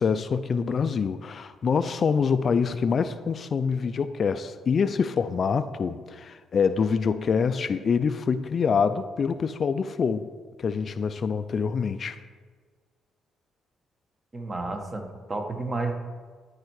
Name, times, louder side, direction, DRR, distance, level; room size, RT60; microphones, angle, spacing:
voice 1, 0.0-10.3 10.6-12.2, left 6 dB, 50° left, 0.4 m, -25 dB
voice 2, 14.3-15.9, right 3 dB, 30° right, 1.1 m, -31 dB
12.0 x 4.4 x 4.7 m
cardioid pair, 90°, 0 cm